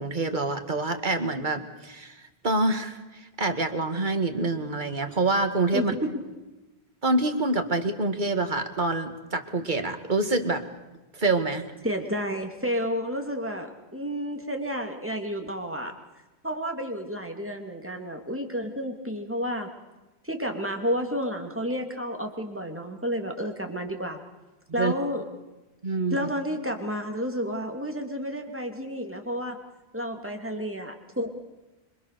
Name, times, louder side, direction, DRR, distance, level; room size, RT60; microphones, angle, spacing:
voice 1, 0.0-2.2 2.4-3.0 3.4-5.9 7.0-10.7 11.1-11.6 24.8-24.9 25.8-26.2, right 2 dB, 50° right, 7 dB, 2.0 m, -26 dB
voice 2, 5.7-6.1 11.8-15.9 16.4-19.7 20.2-24.2 24.7-25.2 26.1-29.6 29.9-31.3, equal, 10° right, 3 dB, 2.7 m, -31 dB
26.5 x 24.0 x 6.8 m, 1.1 s
omnidirectional pair, 1.1 m